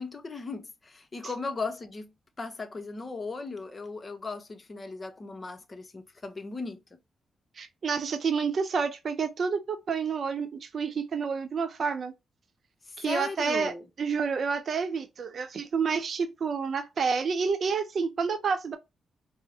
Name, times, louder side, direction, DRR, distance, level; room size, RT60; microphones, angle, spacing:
voice 1, 0.0-2.1 2.4-6.8 12.9-13.9, left 3 dB, 40° left, 0.8 m, -37 dB
voice 2, 7.6-12.1 13.0-13.7 14.0-18.8, right 5 dB, 60° right, 0.7 m, -29 dB
4.5 x 2.1 x 2.8 m
supercardioid pair, 45°, 0 cm